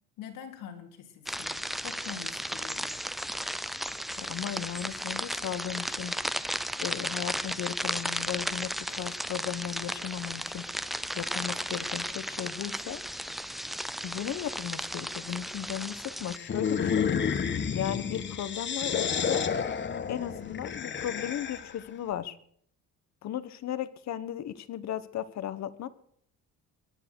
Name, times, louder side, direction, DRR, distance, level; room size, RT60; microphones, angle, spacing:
voice 1, 0.2-2.9, left 8 dB, 90° left, 3 dB, 3.9 m, -45 dB
sound 1, 1.3-16.4, equal, ahead, 0.6 m, -35 dB
voice 2, 4.2-6.2 6.8-10.7 11.1-13.0 14.0-17.1 17.7-19.4 20.1-22.4 23.2-25.9, left 11 dB, 60° left, 15 dB, 1.4 m, -36 dB
sound 2, 16.3-21.8, left 7 dB, 35° left, 1.5 m, -30 dB
23.0 x 9.9 x 6.4 m, 0.63 s
cardioid pair, 130°, 31 cm